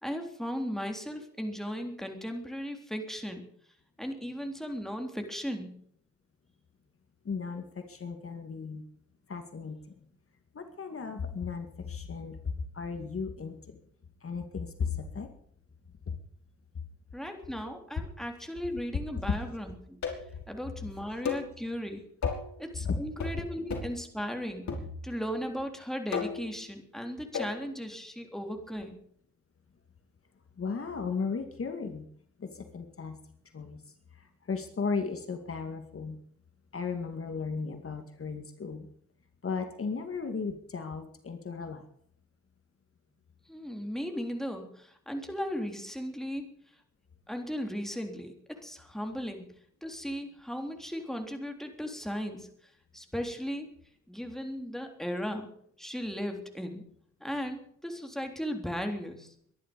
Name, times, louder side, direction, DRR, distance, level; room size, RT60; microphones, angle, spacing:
voice 1, 0.0-3.4 4.0-5.7 17.1-20.0 20.5-22.0 22.6-24.7 25.0-29.0 43.5-46.5 47.3-49.5 49.8-53.7 54.1-55.5 55.8-56.8 57.2-59.3, equal, ahead, 4 dB, 3.6 m, -36 dB
voice 2, 7.2-8.8 9.3-9.8 10.5-13.8 14.2-15.3 22.8-23.0 30.6-32.1 32.4-33.2 33.5-33.8 34.1-36.2 36.7-38.9 39.4-41.8, left 5 dB, 50° left, 6 dB, 2.2 m, -35 dB
sound 1, 20.0-20.4 21.3-21.5 22.2-22.5 23.2-23.4 23.7-24.0 24.7-25.3 26.1-26.5 27.3-27.6, left 6 dB, 70° left, 5.4 m, -34 dB
23.0 x 11.5 x 5.3 m, 0.65 s
wide cardioid pair, 110°, 29 cm